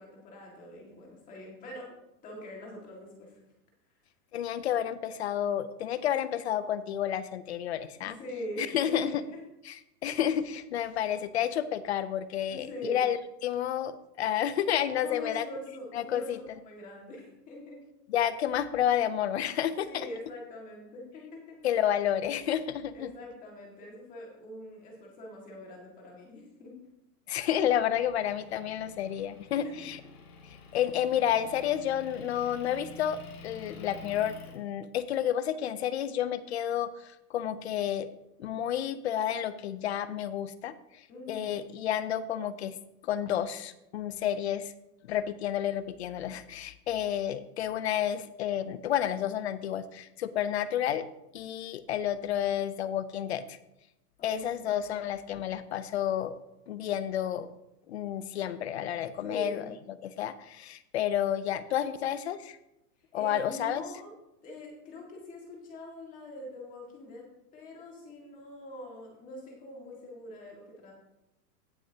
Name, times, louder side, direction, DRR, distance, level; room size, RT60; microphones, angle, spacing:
voice 1, 0.0-1.9 2.2-3.4 8.0-9.4 12.5-13.1 15.0-16.3 16.6-17.8 19.9-21.6 22.9-26.7 29.6-29.8 41.1-41.7 54.2-54.9 59.2-59.7 63.1-64.1 64.4-67.3 67.5-70.9, left 1 dB, 15° left, -1 dB, 1.9 m, -43 dB
voice 2, 4.3-8.2 8.6-9.2 9.7-9.8 10.0-13.9 14.2-15.4 15.9-16.6 18.1-20.1 21.6-23.1 27.3-30.0 30.7-38.1 38.4-40.7 41.3-42.8 43.0-44.7 45.1-51.0 51.3-53.6 54.2-56.4 56.7-57.5 57.9-59.7 60.0-62.6 63.1-63.8, left 10 dB, 45° left, 14 dB, 0.5 m, -30 dB
Motor vehicle (road) / Engine, 28.2-34.6, left 3 dB, 60° left, 2.2 m, -49 dB
17.5 x 6.3 x 2.8 m, 0.89 s
supercardioid pair, 175°, 48 cm